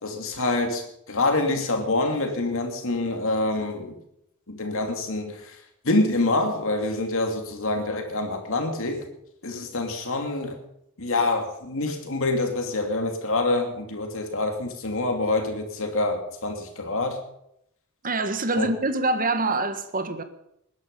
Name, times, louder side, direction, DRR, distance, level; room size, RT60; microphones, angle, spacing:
voice 1, 0.0-4.0 4.5-9.1 9.4-10.6 11.0-17.2 18.5-18.7, left 2 dB, 65° left, 2.8 m, -26 dB
voice 2, 18.0-20.2, right 2 dB, 40° right, 1.5 m, -25 dB
20.0 x 11.0 x 5.5 m
head